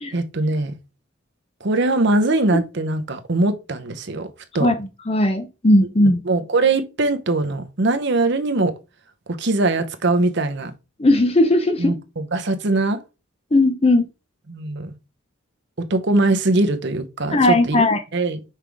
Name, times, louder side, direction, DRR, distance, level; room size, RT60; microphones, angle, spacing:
voice 1, 0.1-0.7 1.6-4.3 4.5-4.7 6.3-8.7 9.4-10.7 11.8-13.0 14.5-14.9 15.9-17.8 18.1-18.4, right 2 dB, 55° right, 0.8 m, -21 dB
voice 2, 4.6-6.2 11.0-11.9 13.5-14.1 17.3-18.0, left 1 dB, 25° left, 0.6 m, -17 dB
5.8 x 3.5 x 4.7 m
head